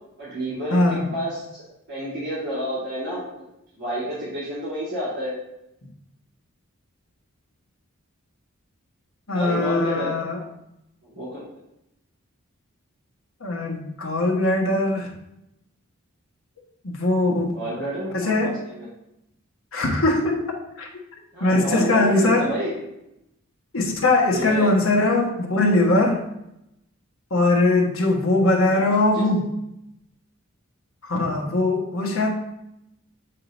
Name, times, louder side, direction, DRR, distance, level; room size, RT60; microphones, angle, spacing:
voice 1, 0.2-1.4 1.9-3.3 3.8-5.3 9.3-10.2 11.0-11.6 17.5-18.9 21.3-22.8 24.3-24.8 28.7-28.9 29.1-29.3, equal, 50° right, -10 dB, 2.7 m, -29 dB
voice 2, 0.7-1.1 9.3-10.4 13.4-15.1 16.8-17.6 18.1-18.6 19.7-20.5 20.8-20.9 21.4-22.5 23.7-26.2 27.3-29.5 31.0-32.3, left 2 dB, 65° left, 0 dB, 1.2 m, -21 dB
7.8 x 3.8 x 3.9 m, 0.84 s
head